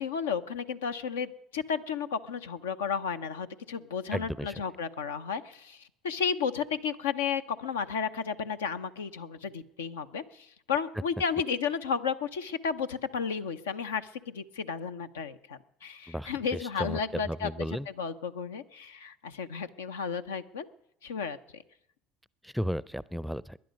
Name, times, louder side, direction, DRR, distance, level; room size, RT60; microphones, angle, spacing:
voice 1, 0.0-17.5 18.0-20.7 21.0-21.6, left 6 dB, 90° left, 9 dB, 0.7 m, -33 dB
voice 2, 4.1-4.6 16.1-17.9 22.4-23.6, equal, ahead, 20 dB, 0.5 m, -34 dB
20.5 x 10.5 x 5.2 m, 0.77 s
hypercardioid pair, 70°, 0 cm